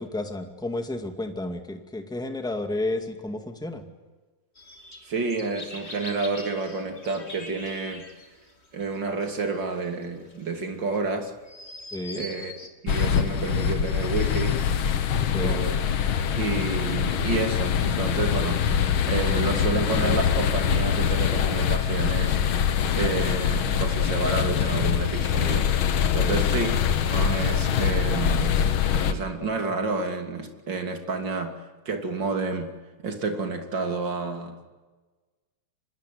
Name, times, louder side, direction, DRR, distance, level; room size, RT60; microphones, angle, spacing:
voice 1, 0.0-3.8 11.9-12.2 15.3-15.6 26.2-26.4, left 2 dB, ahead, 5 dB, 1.7 m, -31 dB
sound 1, 4.6-12.7, left 2 dB, 20° left, 2.8 m, -43 dB
voice 2, 5.0-8.1 8.7-11.3 12.2-12.5 12.8-14.6 15.4-15.9 16.4-22.7 23.0-28.6 29.0-34.7, right 3 dB, 40° right, 4 dB, 3.4 m, -30 dB
sound 2, 12.9-29.1, left 8 dB, 55° left, 1.7 m, -24 dB
25.0 x 21.5 x 9.4 m, 1.3 s
omnidirectional pair, 3.4 m